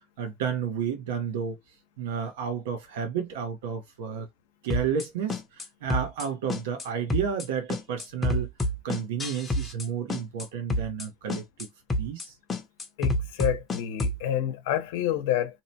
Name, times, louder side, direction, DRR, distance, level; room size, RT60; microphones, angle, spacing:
voice 1, 0.2-1.6 2.0-4.3 4.6-8.5 8.8-11.7 12.0-12.3, right 7 dB, 85° right, 0.9 m, -31 dB
sound 1, 4.7-5.0 5.3-5.6 5.9-6.2 6.5-6.8 7.1-7.4 7.7-9.8 10.1-10.4 10.7-11.0 11.3-11.6 11.9-12.2 12.5-14.2, left 1 dB, 15° left, 0.7 m, -28 dB
voice 2, 13.0-15.6, left 11 dB, 75° left, 0.7 m, -28 dB
2.8 x 2.1 x 2.7 m
supercardioid pair, 145°, 0 cm